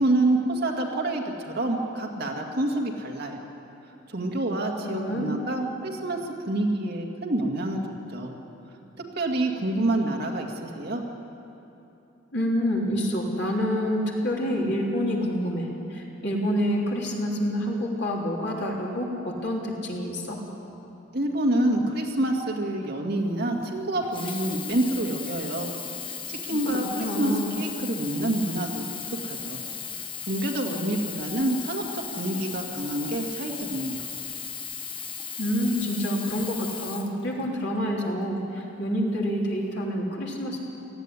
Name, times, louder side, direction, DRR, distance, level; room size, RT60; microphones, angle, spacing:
voice 1, 0.0-3.5 4.1-7.8 8.1-8.3 9.2-11.0 21.1-25.7 26.3-28.9 29.2-29.6 30.2-34.1, right 1 dB, 55° right, 1 dB, 2.1 m, -27 dB
voice 2, 4.8-5.4 12.3-20.4 26.5-27.5 35.4-40.6, equal, 60° left, -2 dB, 3.3 m, -27 dB
Sink (filling or washing), 24.0-37.8 38.5-38.6, left 6 dB, 25° left, 1.0 m, -36 dB
18.0 x 14.5 x 9.8 m, 2.9 s
head